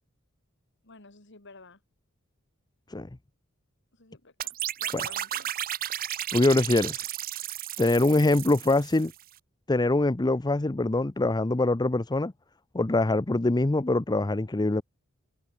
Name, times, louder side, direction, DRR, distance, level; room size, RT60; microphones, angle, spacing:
voice 1, 0.8-1.8 3.9-5.5, left 3 dB, 60° left, 4.1 m, -52 dB
sound 1, 4.4-9.2, right 12 dB, 45° right, 0.6 m, -34 dB
voice 2, 6.3-7.1 7.8-9.1 9.7-12.3 12.7-14.8, left 2 dB, 20° left, 0.6 m, -24 dB
head